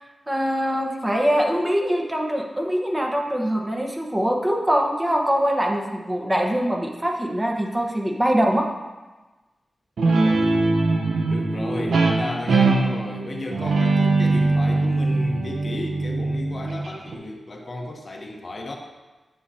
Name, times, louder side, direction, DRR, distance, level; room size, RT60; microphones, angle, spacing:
voice 1, 0.3-8.7, equal, 15° right, 1 dB, 1.1 m, -23 dB
Guitar, 10.0-17.1, right 3 dB, 85° right, 0.9 m, -21 dB
voice 2, 10.1-10.7 11.3-18.8, left 2 dB, 50° left, 1 dB, 1.0 m, -34 dB
10.0 x 6.8 x 2.8 m, 1.2 s
wide cardioid pair, 75°, 0 cm